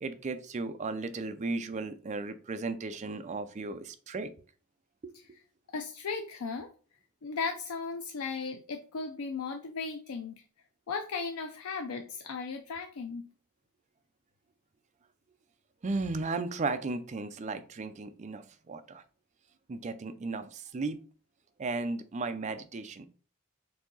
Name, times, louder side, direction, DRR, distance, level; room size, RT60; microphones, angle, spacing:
voice 1, 0.0-4.3 5.0-5.1 15.8-19.0 19.7-21.0 21.6-23.1, right 3 dB, 35° right, 10 dB, 0.4 m, -35 dB
voice 2, 5.7-6.7 7.2-10.4 10.9-13.2, left 4 dB, 85° left, 5 dB, 0.5 m, -36 dB
4.7 x 2.7 x 3.9 m, 0.39 s
head